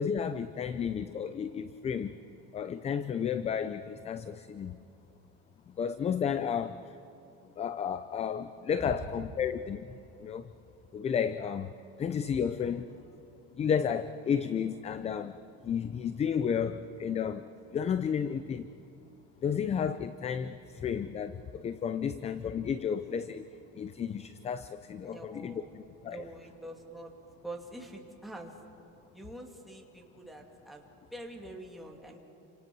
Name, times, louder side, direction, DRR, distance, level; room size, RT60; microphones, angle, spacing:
voice 1, 0.0-2.2 2.5-4.8 5.7-7.0 7.6-9.9 10.2-10.5 10.9-11.7 12.0-12.9 13.6-15.4 15.6-18.7 19.4-23.5 23.7-26.2, left 7 dB, 20° left, 13 dB, 0.5 m, -32 dB
voice 2, 25.0-25.7 26.0-27.1 27.4-28.6 29.1-30.8 31.1-32.2, right 1 dB, ahead, 0 dB, 2.4 m, -45 dB
29.5 x 26.0 x 6.2 m, 2.9 s
cardioid pair, 160°, 32 cm